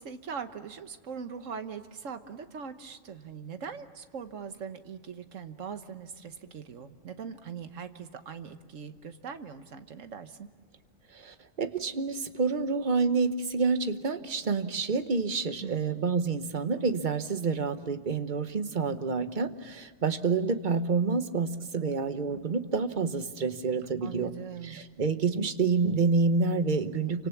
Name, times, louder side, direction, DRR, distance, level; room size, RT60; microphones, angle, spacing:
voice 1, 0.0-10.5 15.6-16.1 24.0-24.8, right 6 dB, 75° right, 9 dB, 1.5 m, -41 dB
voice 2, 11.1-24.3 24.6-27.3, right 4 dB, 40° right, 10 dB, 1.1 m, -28 dB
28.5 x 25.5 x 7.2 m, 1.5 s
omnidirectional pair, 1.3 m